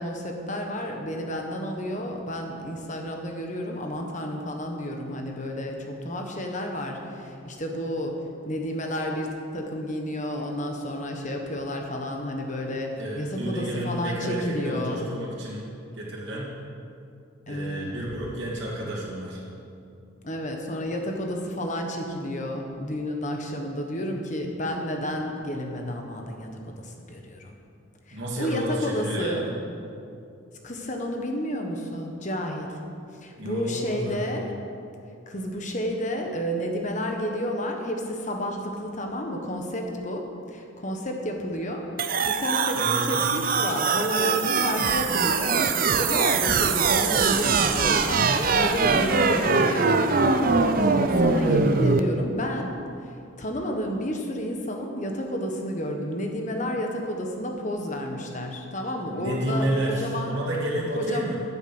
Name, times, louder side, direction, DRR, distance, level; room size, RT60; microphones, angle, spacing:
voice 1, 0.0-15.0 17.5-18.0 20.2-27.5 28.1-29.4 30.6-32.8 33.2-34.5 35.3-45.7 46.0-52.7 53.0-60.3 61.0-61.3, equal, 35° left, 2 dB, 1.3 m, -31 dB
voice 2, 13.0-15.7 15.9-16.5 17.5-19.4 28.1-29.6 33.4-34.4 42.7-43.3 59.1-61.4, right 1 dB, 60° right, -6 dB, 2.6 m, -30 dB
sound 1, 42.0-52.0, right 4 dB, 45° right, 0.6 m, -22 dB
13.0 x 8.2 x 6.2 m, 2.6 s
head